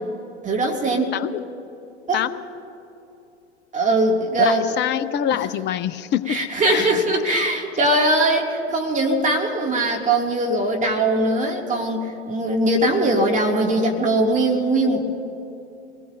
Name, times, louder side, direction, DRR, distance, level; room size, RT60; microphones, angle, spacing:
voice 1, 0.4-1.1 2.1-2.2 3.7-4.6 6.3-15.1, right 1 dB, 20° right, -1 dB, 2.3 m, -21 dB
voice 2, 1.1-1.4 2.1-2.3 4.4-6.4 6.6-6.9 7.2-7.4, left 10 dB, 30° left, 13 dB, 0.7 m, -25 dB
26.0 x 19.0 x 2.6 m, 2.8 s
figure-of-eight pair, 85°, 34 cm